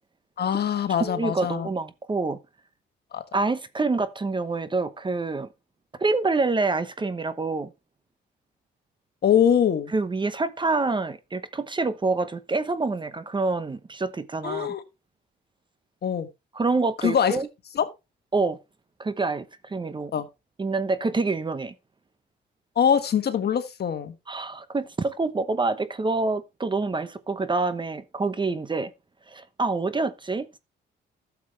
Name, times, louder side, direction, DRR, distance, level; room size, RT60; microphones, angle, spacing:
voice 1, 0.4-1.7 3.1-3.2 9.2-9.9 14.4-14.8 16.0-16.3 17.0-17.4 17.7-17.9 20.1-20.3 22.7-24.1, left 8 dB, 55° left, 1.4 m, -23 dB
voice 2, 0.9-2.4 3.3-5.5 6.0-7.7 9.9-14.7 16.5-17.5 18.3-18.6 19.0-20.1 20.6-21.7 24.3-28.9 29.3-30.6, right 3 dB, 25° right, 0.9 m, -27 dB
12.0 x 7.2 x 3.2 m
cardioid pair, 90°, 20 cm